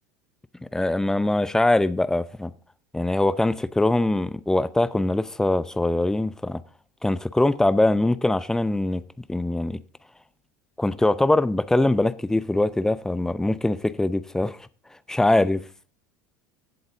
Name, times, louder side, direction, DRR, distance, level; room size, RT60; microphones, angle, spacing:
voice 1, 0.6-2.5 2.9-6.6 7.0-9.0 9.3-9.8 10.8-14.6 15.1-15.6, left 2 dB, 5° left, 0.6 m, -22 dB
15.5 x 7.9 x 3.8 m
figure-of-eight pair, 75°, 9 cm